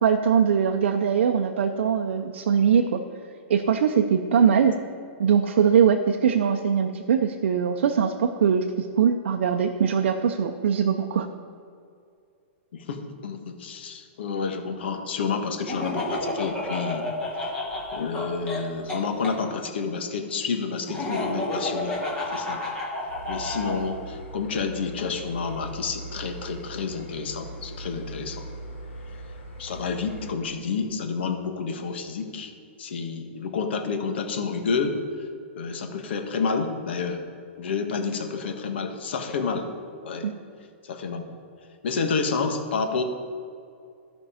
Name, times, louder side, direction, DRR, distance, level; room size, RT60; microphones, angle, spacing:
voice 1, 0.0-3.0 3.5-4.7 5.2-11.3 40.2-40.3, right 7 dB, 65° right, 4 dB, 0.6 m, -21 dB
voice 2, 12.7-17.1 17.4-17.5 17.9-22.0 22.3-22.6 23.3-28.5 29.6-32.5 32.8-35.0 35.6-37.2 37.6-39.7 40.0-40.3 40.8-41.2 41.8-43.0, left 5 dB, 60° left, 5 dB, 1.2 m, -29 dB
Laughter, 15.7-19.3 20.9-23.8, left 2 dB, 10° left, 1.3 m, -30 dB
sound 1, 23.1-30.3, right 1 dB, 75° left, 2.3 m, -40 dB
13.5 x 5.3 x 5.0 m, 2.4 s
hypercardioid pair, 175°, 7 cm